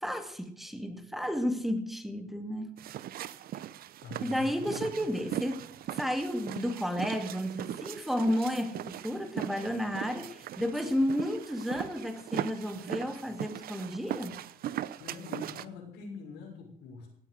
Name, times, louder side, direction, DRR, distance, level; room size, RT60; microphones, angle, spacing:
voice 1, 0.0-2.8 4.2-5.6 5.9-14.4, equal, ahead, 7 dB, 2.5 m, -32 dB
sound 1, 2.8-15.7, right 12 dB, 60° right, 0.8 m, -39 dB
voice 2, 4.0-5.0 15.0-17.1, left 4 dB, 90° left, 2 dB, 6.3 m, -44 dB
17.5 x 8.6 x 8.1 m, 0.63 s
cardioid pair, 110°, 17 cm